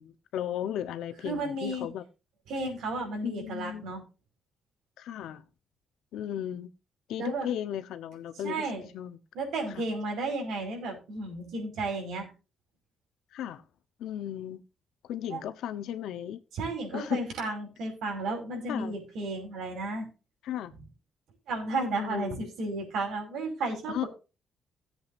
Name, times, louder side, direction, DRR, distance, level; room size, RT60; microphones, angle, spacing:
voice 1, 0.0-2.0 3.2-3.9 5.0-5.4 6.1-6.7 7.1-8.7 8.9-9.2 13.3-13.6 14.0-14.6 15.0-16.4 16.9-17.3 18.7-18.9 20.4-20.7 22.0-22.5 23.9-24.0, left 10 dB, 90° left, 1.0 m, -35 dB
voice 2, 1.2-1.9 2.5-4.0 7.2-7.5 8.4-8.9 9.3-12.3 15.3-15.4 16.5-20.1 20.8-20.9 21.5-24.1, right 2 dB, 80° right, 5.0 m, -33 dB
17.5 x 7.9 x 2.6 m
cardioid pair, 145°, 0 cm